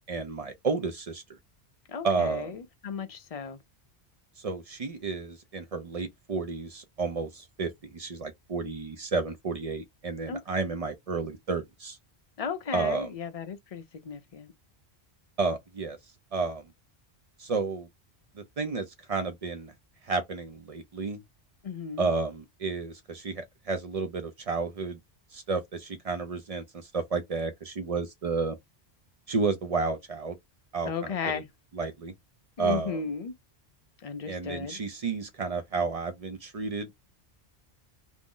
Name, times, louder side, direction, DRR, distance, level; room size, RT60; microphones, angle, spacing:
voice 1, 0.1-1.2 2.0-2.6 4.4-12.0 12.7-13.1 15.4-16.0 16.3-16.6 17.4-17.9 18.4-19.7 20.0-21.2 22.0-25.0 25.3-28.6 29.3-30.4 30.7-31.1 31.7-32.1 32.6-33.0 34.3-36.9, right 4 dB, 50° right, 0.4 m, -31 dB
voice 2, 1.9-3.6 10.3-10.4 12.4-14.5 21.6-22.1 30.9-31.5 32.6-33.3 34.0-34.8, left 6 dB, 50° left, 0.5 m, -35 dB
2.6 x 2.0 x 3.6 m
omnidirectional pair, 1.1 m